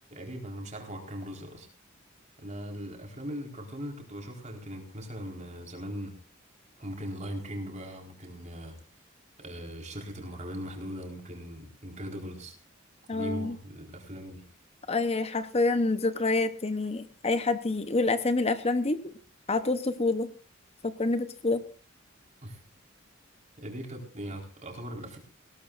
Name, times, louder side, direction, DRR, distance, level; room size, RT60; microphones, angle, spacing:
voice 1, 0.1-1.7 2.4-6.1 6.8-8.8 9.4-12.5 13.1-14.4 22.4-22.6 23.6-25.2, equal, 35° right, 2 dB, 4.3 m, -39 dB
voice 2, 13.1-13.6 14.9-19.1 19.5-20.3 20.8-21.6, left 3 dB, 30° left, 10 dB, 0.8 m, -27 dB
20.0 x 18.0 x 2.5 m, 0.37 s
head